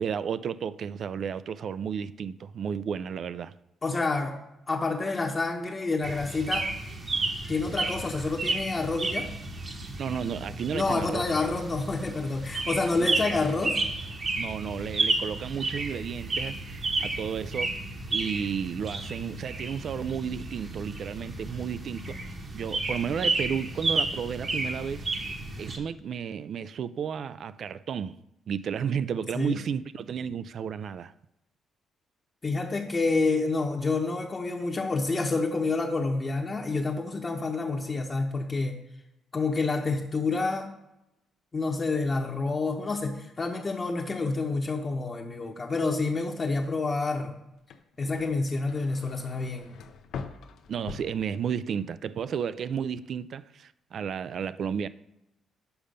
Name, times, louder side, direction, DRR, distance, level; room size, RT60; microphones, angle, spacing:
voice 1, 0.0-3.5 10.0-11.2 13.0-13.1 14.4-17.8 18.1-25.1 25.6-28.2 28.5-31.1 50.7-54.9, right 7 dB, 60° right, 0.3 m, -32 dB
voice 2, 3.8-4.3 4.7-6.7 7.5-9.3 10.7-13.8 29.3-29.6 32.4-38.7 39.3-40.7 41.5-47.3 48.0-49.7, left 3 dB, 30° left, 0.9 m, -28 dB
sound 1, 6.0-25.8, right 3 dB, 40° right, 1.1 m, -32 dB
sound 2, 47.6-51.8 52.2-52.7, left 5 dB, 75° left, 0.6 m, -43 dB
6.9 x 5.3 x 5.1 m
cardioid pair, 90°, 0 cm